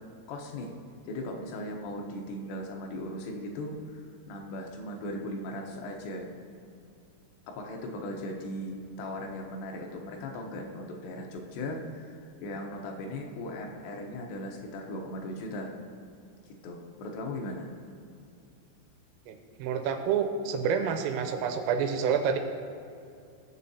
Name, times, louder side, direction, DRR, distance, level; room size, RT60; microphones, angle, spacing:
voice 1, 0.3-0.7 1.0-6.3 7.5-15.7 16.6-17.7, left 1 dB, 75° left, 1 dB, 2.9 m, -38 dB
voice 2, 19.3-22.4, right 7 dB, 85° right, 6 dB, 3.3 m, -28 dB
21.5 x 7.3 x 2.8 m, 2.5 s
omnidirectional pair, 5.8 m